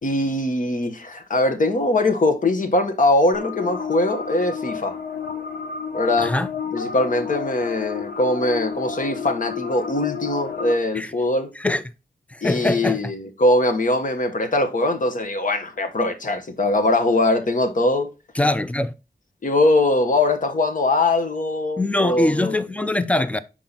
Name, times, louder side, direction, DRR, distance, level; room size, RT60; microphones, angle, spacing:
voice 1, 0.0-4.9 5.9-6.3 6.7-11.5 12.4-18.1 19.4-22.6, left 2 dB, 55° left, 1.1 m, -21 dB
sound 1, 3.3-10.7, left 6 dB, 80° left, 1.0 m, -31 dB
voice 2, 6.2-6.5 10.9-11.1 11.6-11.8 12.3-13.1 18.3-18.9 21.8-23.4, left 2 dB, 10° left, 0.4 m, -22 dB
5.8 x 4.7 x 3.8 m
wide cardioid pair, 110°, 16 cm